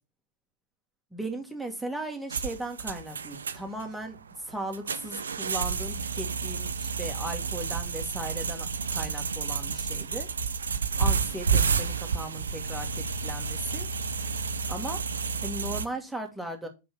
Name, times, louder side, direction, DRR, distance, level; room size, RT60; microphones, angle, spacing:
voice 1, 1.1-10.3 11.0-13.9 14.7-15.0 15.4-16.7, right 1 dB, ahead, 1.9 m, -37 dB
sound 1, 2.3-15.8, right 5 dB, 70° right, 0.6 m, -30 dB
5.4 x 5.2 x 6.1 m
figure-of-eight pair, 90°, 0 cm